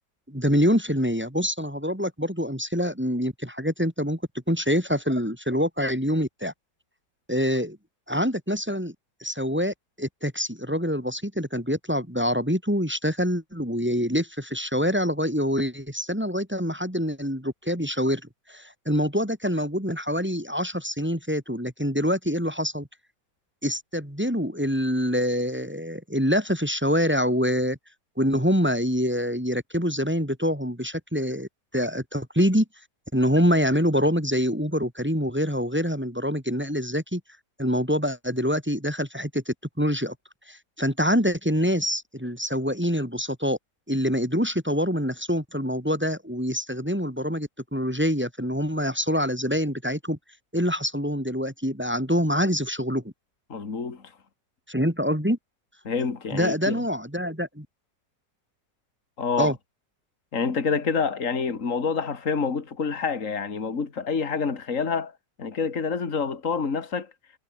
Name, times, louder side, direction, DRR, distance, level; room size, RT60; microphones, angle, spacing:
voice 1, 0.3-4.2 4.5-6.5 7.3-7.8 8.1-8.9 9.2-18.2 18.5-22.9 23.6-27.8 28.2-31.5 31.7-32.6 33.1-37.2 37.6-40.1 40.5-43.6 43.9-50.2 50.5-53.0 54.7-55.4 56.3-57.7 59.4-59.5, equal, 5° right, 3.1 m, -25 dB
voice 2, 53.5-54.0 55.8-56.8 59.2-59.5 60.3-65.1 65.4-67.1, left 5 dB, 45° left, 2.8 m, -27 dB
omnidirectional pair, 1.9 m